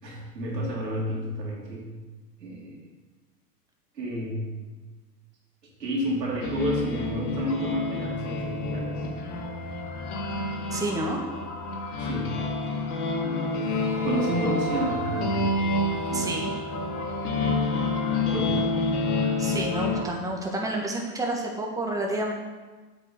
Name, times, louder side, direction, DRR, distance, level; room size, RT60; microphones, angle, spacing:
voice 1, 0.0-2.0 2.4-2.8 4.0-4.5 5.8-9.0 12.0-12.4 13.2-13.7 14.0-15.5 16.1-16.3 18.3-18.7, equal, 90° right, -3 dB, 2.9 m, -31 dB
sound 1, 6.4-20.0, left 2 dB, 65° left, 2.1 m, -28 dB
voice 2, 10.7-11.2 16.1-16.5 19.4-22.3, right 1 dB, 5° right, 0 dB, 1.4 m, -29 dB
8.5 x 5.5 x 6.6 m, 1.3 s
hypercardioid pair, 100°, 48 cm